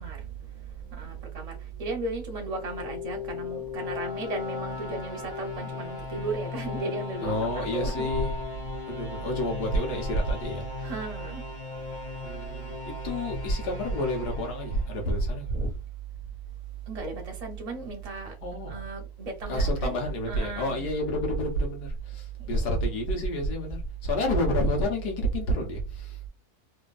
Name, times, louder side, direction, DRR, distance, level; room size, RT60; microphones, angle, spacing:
voice 1, 0.0-8.1 10.8-11.4 15.5-15.7 16.9-18.4 18.7-20.0 20.3-20.9 22.4-22.6, right 2 dB, 35° right, 0.7 m, -36 dB
sound 1, 2.3-15.3, left 5 dB, 70° left, 1.6 m, -37 dB
voice 2, 7.2-8.3 8.9-10.9 12.2-15.5 18.4-18.8 19.5-26.3, equal, 90° left, 1.6 m, -29 dB
3.5 x 2.6 x 2.4 m
omnidirectional pair, 1.6 m